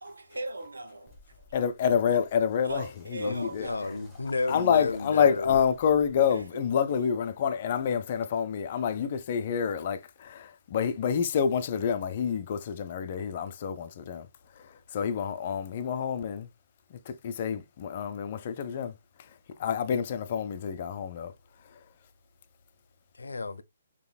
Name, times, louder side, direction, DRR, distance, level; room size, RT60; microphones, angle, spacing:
voice 1, 0.0-1.5 2.6-4.1 6.3-6.4, right 2 dB, 90° right, 1.1 m, -39 dB
sound 1, 1.1-6.5, left 2 dB, 5° right, 2.1 m, -55 dB
voice 2, 1.5-4.0 4.5-16.5 16.9-21.3 21.6-21.8, left 7 dB, 45° left, 0.6 m, -28 dB
voice 3, 3.2-5.6 23.2-23.6, left 3 dB, 90° left, 0.6 m, -32 dB
7.0 x 3.0 x 2.2 m
hypercardioid pair, 150°, 0 cm